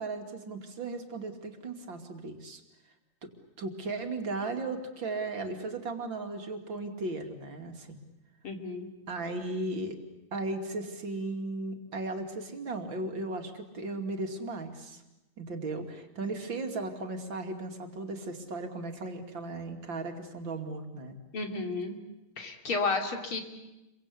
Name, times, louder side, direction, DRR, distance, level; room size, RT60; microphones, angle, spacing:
voice 1, 0.0-2.6 3.2-3.3 3.6-8.0 9.1-10.0 10.3-15.0 15.4-21.2, right 2 dB, 60° right, 4 dB, 3.1 m, -36 dB
voice 2, 8.4-8.9 21.3-22.0 22.4-23.4, left 3 dB, 75° left, 4 dB, 3.8 m, -32 dB
29.5 x 24.0 x 8.4 m, 0.96 s
omnidirectional pair, 2.4 m